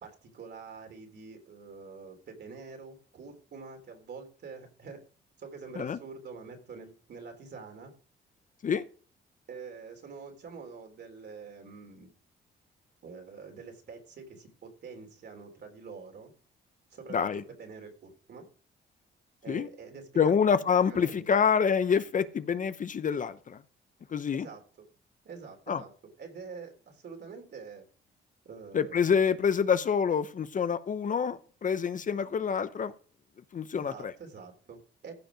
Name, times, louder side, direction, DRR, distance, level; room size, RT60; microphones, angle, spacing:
voice 1, 0.0-5.0 5.4-7.9 9.5-12.1 13.0-16.3 16.9-18.5 19.4-20.3 20.9-21.4 24.3-24.9 25.2-27.9 28.5-29.4 33.7-35.2, right 5 dB, 60° right, 4 dB, 3.6 m, -46 dB
voice 2, 17.1-17.4 19.5-19.7 20.2-23.6 24.1-24.5 25.7-25.8 28.7-32.9 33.5-34.1, left 6 dB, 40° left, 13 dB, 0.7 m, -27 dB
15.0 x 5.2 x 5.1 m, 0.41 s
cardioid pair, 90°, 20 cm